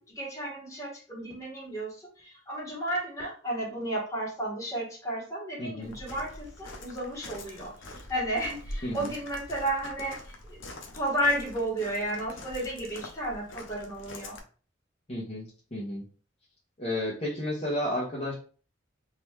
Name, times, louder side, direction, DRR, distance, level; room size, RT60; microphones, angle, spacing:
voice 1, 0.1-7.7 8.1-10.7 10.9-14.4, right 1 dB, 15° left, -5 dB, 1.8 m, -33 dB
voice 2, 5.6-5.9 8.8-9.1 15.1-16.1 16.8-18.3, left 1 dB, 35° left, -6 dB, 1.1 m, -32 dB
Walk footsteps, 5.8-14.4, left 1 dB, 75° left, 0.8 m, -44 dB
3.9 x 2.9 x 3.2 m, 0.39 s
head